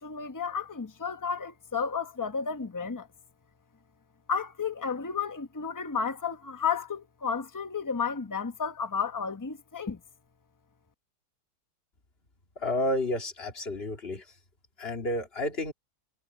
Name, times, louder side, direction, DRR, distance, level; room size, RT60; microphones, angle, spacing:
voice 1, 0.0-3.1 4.3-10.0, left 6 dB, 15° left, 0.8 m, -32 dB
voice 2, 12.6-14.2 14.8-15.7, left 1 dB, 40° left, 2.5 m, -30 dB
omnidirectional pair, 1.7 m